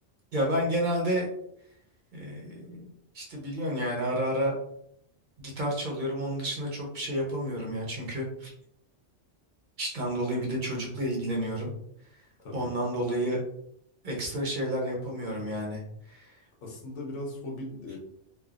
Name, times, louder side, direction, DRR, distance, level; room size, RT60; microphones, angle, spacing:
voice 1, 0.3-1.3 2.1-2.9 3.1-4.5 5.4-8.5 9.8-11.7 12.5-13.4 14.0-15.8 16.1-16.3, equal, 50° right, -2 dB, 0.7 m, -30 dB
voice 2, 16.6-18.0, left 1 dB, 90° left, 0 dB, 1.1 m, -38 dB
3.2 x 2.0 x 2.4 m, 0.71 s
omnidirectional pair, 1.2 m